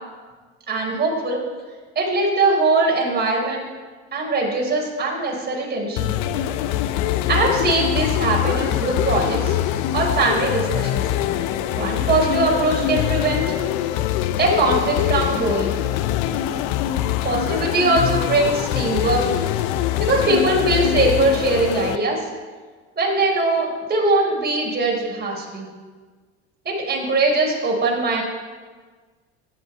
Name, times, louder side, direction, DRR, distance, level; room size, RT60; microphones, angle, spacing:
voice 1, 0.7-1.4 1.9-3.6 4.1-6.1 7.3-9.6 9.9-11.0 11.7-13.4 14.4-15.7 17.2-19.2 20.0-22.2 23.0-25.7 26.6-28.2, right 2 dB, 30° right, -2 dB, 4.4 m, -21 dB
sound 1, 6.0-22.0, left 12 dB, 65° left, 0.8 m, -23 dB
13.5 x 10.0 x 4.6 m, 1.4 s
hypercardioid pair, 80°, 33 cm